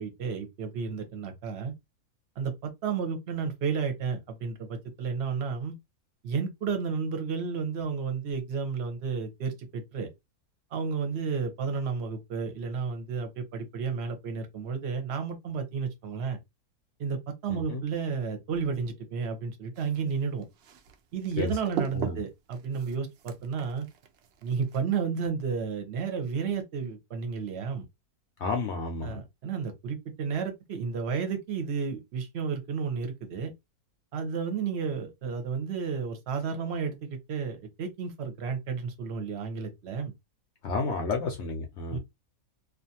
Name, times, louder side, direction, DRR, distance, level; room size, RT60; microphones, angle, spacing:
voice 1, 0.0-1.7 2.4-5.8 6.2-10.1 10.7-16.4 17.0-20.4 21.1-23.9 24.4-27.8 29.0-33.5 34.1-40.1 41.9-42.0, right 5 dB, 55° right, 0.8 m, -32 dB
voice 2, 17.5-17.8 21.4-21.5 21.9-22.2 28.4-29.2 40.6-42.0, left 4 dB, 65° left, 0.7 m, -31 dB
sound 1, 19.8-24.8, right 9 dB, 80° right, 0.5 m, -40 dB
2.5 x 2.4 x 2.6 m
omnidirectional pair, 1.6 m